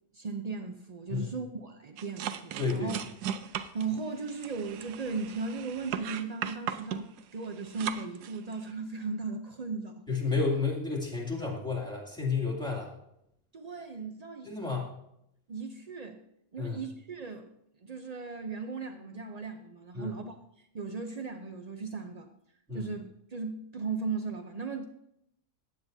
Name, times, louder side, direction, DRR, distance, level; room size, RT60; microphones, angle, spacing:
voice 1, 0.1-3.0 3.7-10.1 13.5-14.8 15.5-16.2 16.5-17.5 17.8-22.3 22.7-24.9, right 4 dB, 70° right, 5 dB, 0.3 m, -37 dB
sound 1, 2.0-8.7, right 9 dB, 85° right, 1.2 m, -37 dB
voice 2, 2.6-2.9 10.1-12.9 14.4-14.9 16.6-16.8 19.9-20.1 22.7-22.8, left 4 dB, 5° left, -3 dB, 2.3 m, -31 dB
15.0 x 9.3 x 2.7 m, 0.78 s
omnidirectional pair, 1.7 m